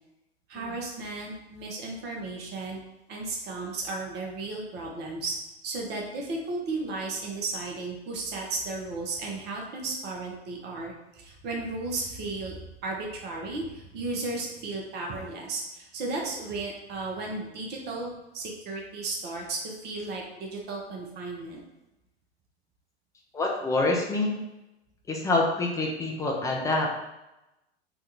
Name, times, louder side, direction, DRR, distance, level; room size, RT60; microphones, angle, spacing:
voice 1, 0.5-2.8 3.1-5.3 5.6-21.6, right 3 dB, 30° right, -1 dB, 0.7 m, -34 dB
voice 2, 23.3-24.4 25.1-26.9, left 2 dB, 10° left, -1 dB, 0.4 m, -26 dB
3.5 x 2.3 x 2.8 m, 0.95 s
figure-of-eight pair, 90°, 32 cm